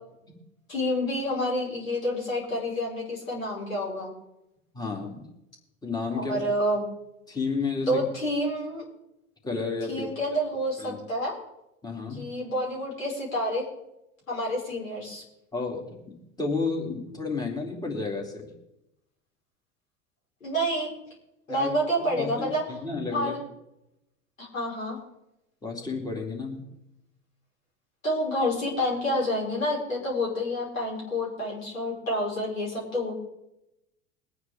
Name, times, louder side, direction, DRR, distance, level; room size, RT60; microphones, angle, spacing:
voice 1, 0.7-4.1 6.2-6.8 7.9-8.8 9.9-11.3 12.1-13.6 14.3-15.2 20.4-20.9 21.5-22.6 23.1-23.4 24.4-25.0 28.0-33.1, equal, 80° left, -3 dB, 4.8 m, -28 dB
voice 2, 4.7-5.3 5.8-6.4 7.3-8.1 9.4-10.1 10.8-11.0 11.8-12.2 15.5-18.5 21.5-21.7 22.2-23.3 25.6-26.7, left 4 dB, 10° left, 0 dB, 2.8 m, -32 dB
22.0 x 9.5 x 3.6 m, 0.87 s
figure-of-eight pair, 80°, 40 cm